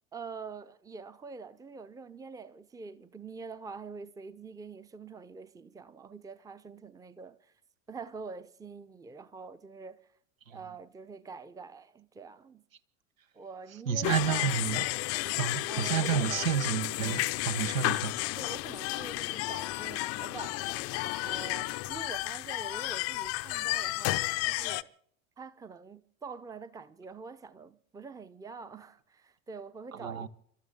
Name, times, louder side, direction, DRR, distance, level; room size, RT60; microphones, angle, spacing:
voice 1, 0.1-7.5 7.9-10.1 10.5-12.6 13.3-14.6 15.7-16.9 18.4-24.9 25.4-30.3, right 4 dB, 10° right, 0.7 m, -45 dB
voice 2, 13.9-14.8 15.4-18.1 29.9-30.3, right 7 dB, 75° right, 1.2 m, -30 dB
sound 1, 14.0-24.8, left 20 dB, 35° left, 0.6 m, -32 dB
29.5 x 13.0 x 3.8 m
figure-of-eight pair, 80°, 41 cm